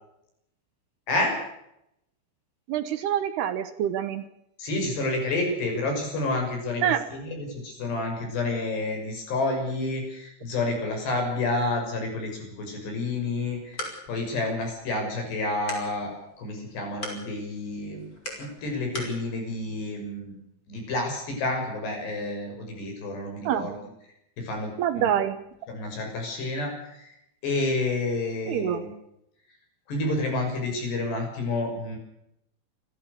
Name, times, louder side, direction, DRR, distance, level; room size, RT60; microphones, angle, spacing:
voice 1, 2.7-4.2 6.8-7.0 23.5-23.7 24.8-25.4 28.5-28.8, right 10 dB, 70° right, 11 dB, 2.6 m, -26 dB
voice 2, 4.6-6.8 7.1-18.1 18.4-20.4 20.7-23.7 24.4-25.1 25.7-27.2 27.4-28.9 29.9-32.0, left 2 dB, 55° left, 3 dB, 8.2 m, -29 dB
sound 1, 13.3-19.2, equal, 15° left, 5.5 m, -42 dB
28.5 x 13.5 x 6.7 m, 0.80 s
omnidirectional pair, 5.8 m